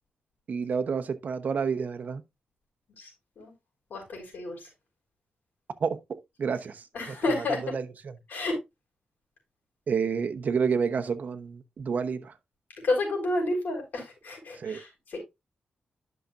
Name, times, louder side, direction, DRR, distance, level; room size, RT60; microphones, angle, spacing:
voice 1, 0.5-2.2 5.8-6.0 6.4-6.8 7.7-7.8 9.9-12.3 14.6-14.8, right 6 dB, 60° right, 0.9 m, -29 dB
voice 2, 3.9-4.6 6.9-7.7 8.3-8.6 12.8-15.2, left 2 dB, 75° left, 4.1 m, -30 dB
11.0 x 5.8 x 2.5 m
wide cardioid pair, 115°, 3 cm